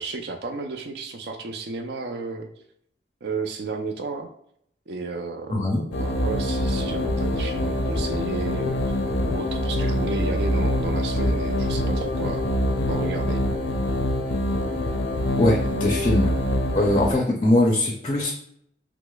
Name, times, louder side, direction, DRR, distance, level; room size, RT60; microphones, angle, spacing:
voice 1, 0.0-2.5 3.2-4.3 4.9-9.0 9.2-12.5 12.9-13.4, right 4 dB, 65° right, 4 dB, 0.5 m, -33 dB
voice 2, 5.5-5.8 15.4-16.4 16.8-18.3, left 1 dB, 30° left, 0 dB, 0.4 m, -21 dB
sound 1, 5.9-17.1, left 1 dB, 85° left, 0.5 m, -25 dB
6.0 x 2.0 x 2.3 m, 0.70 s
head